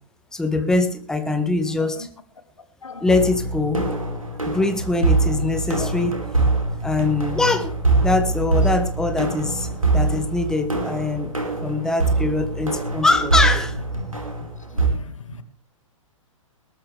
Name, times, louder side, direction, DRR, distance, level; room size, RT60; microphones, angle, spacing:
voice 1, 0.3-2.1 3.0-3.9 4.4-6.2 6.8-7.7 8.0-9.7 9.9-11.3 11.6-13.8, left 2 dB, 5° left, 1.2 m, -22 dB
sound 1, 3.1-14.9, right 3 dB, 85° right, 4.7 m, -23 dB
voice 2, 14.7-15.4, left 3 dB, 70° left, 1.9 m, -38 dB
20.5 x 13.5 x 3.4 m
figure-of-eight pair, 110°, 17 cm